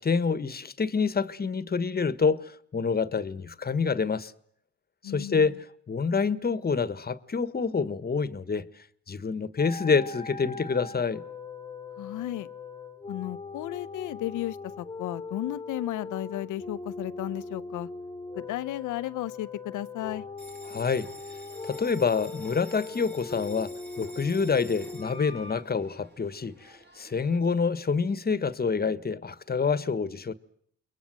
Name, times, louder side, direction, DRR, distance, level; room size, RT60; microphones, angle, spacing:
voice 1, 0.0-4.3 5.0-8.7 9.1-11.2 20.7-21.1 21.7-23.7 24.0-30.3, left 5 dB, 30° left, 1.5 m, -27 dB
voice 2, 5.0-5.6 12.0-12.5 13.1-17.9 18.4-20.2, left 14 dB, 85° left, 1.1 m, -34 dB
sound 1, 9.6-25.6, left 4 dB, 15° left, 1.6 m, -40 dB
Bell, 20.4-27.4, right 1 dB, 35° right, 3.7 m, -50 dB
29.0 x 22.5 x 7.8 m
cardioid pair, 90°, 30 cm